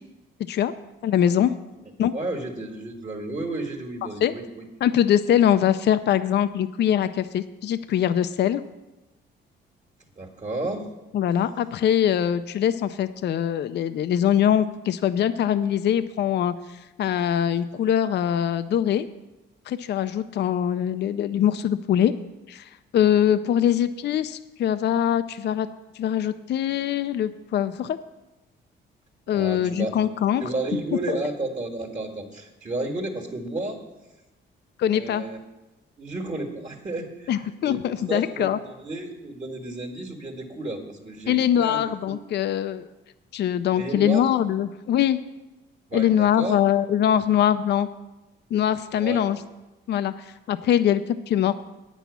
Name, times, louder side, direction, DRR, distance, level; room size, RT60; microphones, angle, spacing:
voice 1, 1.0-1.5 2.0-2.1 4.2-4.3 4.8-8.6 11.1-19.1 19.7-22.1 22.5-25.7 25.9-28.0 29.3-30.4 31.1-31.2 34.8-35.2 37.3-38.6 41.3-42.9 43.3-45.2 45.9-47.9 48.5-49.4 49.9-51.5, left 10 dB, 60° left, 11 dB, 0.5 m, -23 dB
voice 2, 2.1-4.7 10.2-10.9 29.3-29.9 30.4-33.8 34.9-35.4 36.0-42.2 43.7-44.2 45.9-46.6 48.9-49.2, right 2 dB, 35° right, 0 dB, 1.6 m, -32 dB
8.9 x 6.2 x 8.2 m, 1.0 s
cardioid pair, 90°, 20 cm